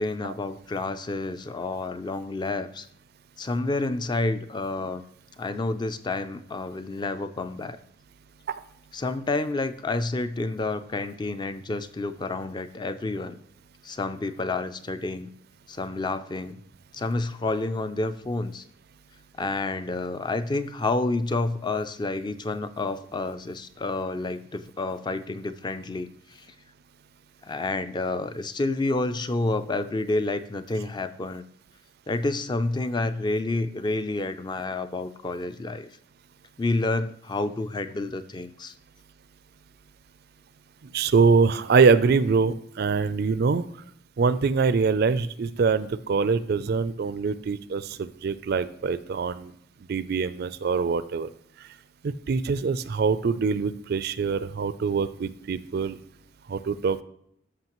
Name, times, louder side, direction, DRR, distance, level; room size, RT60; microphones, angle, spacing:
voice 1, 0.0-2.9 3.4-5.0 5.4-7.8 8.9-13.4 13.8-15.3 15.7-16.6 16.9-18.6 19.4-26.5 27.4-31.4 32.1-35.9 36.6-38.7, left 2 dB, 20° left, 11 dB, 0.3 m, -29 dB
voice 2, 40.9-43.7 44.2-49.5 49.9-51.3 52.0-56.0 56.5-57.0, right 5 dB, 50° right, 14 dB, 0.4 m, -24 dB
13.5 x 5.7 x 3.0 m, 0.71 s
head